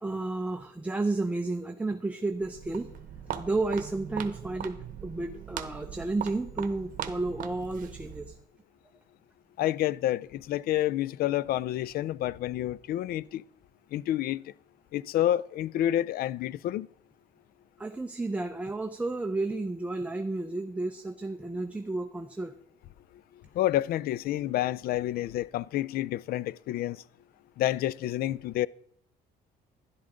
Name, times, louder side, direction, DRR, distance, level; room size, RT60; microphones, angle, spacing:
voice 1, 0.0-2.9 3.3-8.4 17.8-22.5, right 2 dB, 10° right, 0.7 m, -32 dB
Walk footsteps, 2.3-8.4, right 9 dB, 55° right, 1.1 m, -40 dB
voice 2, 9.6-13.4 13.9-14.5 14.9-16.9 23.5-27.0 27.6-28.7, left 13 dB, 65° left, 0.4 m, -29 dB
12.0 x 11.0 x 3.8 m
cardioid pair, 110°, 17 cm